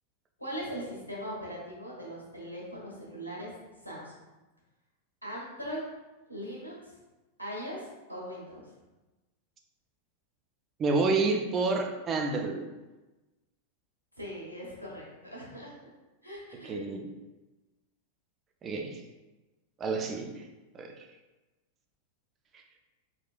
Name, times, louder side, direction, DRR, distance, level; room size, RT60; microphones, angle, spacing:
voice 1, 0.4-3.5 3.8-4.2 5.2-5.8 6.3-6.9 7.4-8.6 14.2-15.1 15.3-15.7 16.2-16.8, equal, 85° left, -5 dB, 1.5 m, -40 dB
voice 2, 10.8-12.7 16.6-17.0 18.6-19.0 19.8-20.3 20.7-21.0, right 3 dB, 25° right, 3 dB, 0.5 m, -29 dB
4.4 x 4.1 x 2.4 m, 1.1 s
figure-of-eight pair, 90°, 0 cm